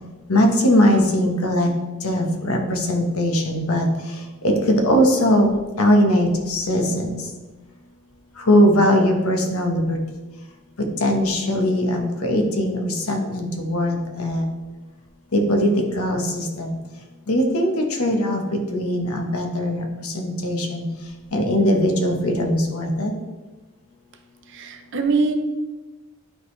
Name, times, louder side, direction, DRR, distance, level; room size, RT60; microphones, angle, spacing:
voice 1, 0.3-1.7 2.0-3.9 4.4-5.5 5.8-7.2 8.5-10.0 11.0-14.4 15.3-15.7 16.0-16.7 17.3-18.4 18.7-20.8 21.3-23.1, equal, 75° left, 3 dB, 1.2 m, -20 dB
voice 2, 24.5-25.4, right 4 dB, 55° right, 6 dB, 0.7 m, -22 dB
11.0 x 3.9 x 3.2 m, 1.2 s
head